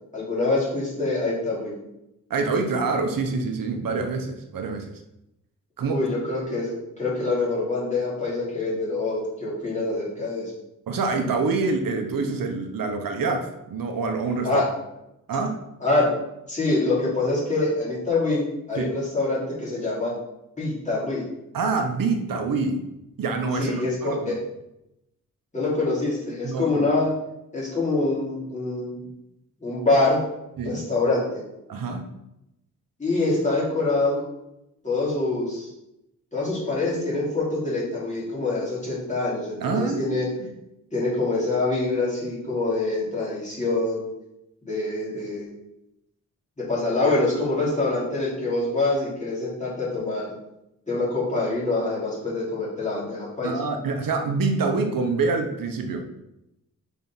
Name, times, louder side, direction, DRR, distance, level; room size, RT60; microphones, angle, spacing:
voice 1, 0.1-1.7 5.9-10.5 14.4-14.6 15.8-16.1 16.5-18.4 18.7-20.1 20.6-21.2 23.6-24.3 25.5-27.1 27.5-29.0 29.6-30.2 30.6-31.4 33.0-34.2 34.8-35.7 36.3-40.3 40.9-44.0 44.6-45.5 46.6-50.3 50.9-53.5, left 2 dB, 20° left, -7 dB, 2.7 m, -25 dB
voice 2, 2.3-4.9 5.8-6.1 10.9-14.6 15.3-15.6 18.7-18.9 21.5-22.8 23.2-24.4 26.4-26.9 30.6-30.8 31.7-32.1 39.6-40.5 53.4-56.0, right 4 dB, 80° right, 5 dB, 0.9 m, -26 dB
6.0 x 4.1 x 5.6 m, 0.87 s
wide cardioid pair, 155°, 33 cm